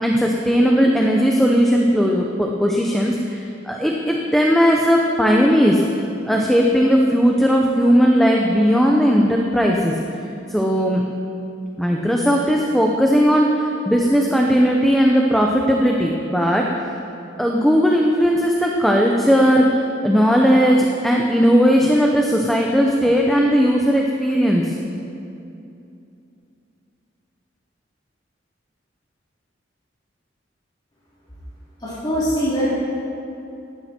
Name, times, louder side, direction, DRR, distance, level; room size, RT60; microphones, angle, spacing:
voice 1, 0.0-5.8 6.3-9.9 10.5-11.0 11.8-16.7 17.4-24.8, equal, ahead, -1 dB, 0.8 m, -17 dB
voice 2, 31.8-32.7, equal, 20° left, -10 dB, 3.3 m, -22 dB
18.0 x 12.0 x 4.4 m, 2.7 s
head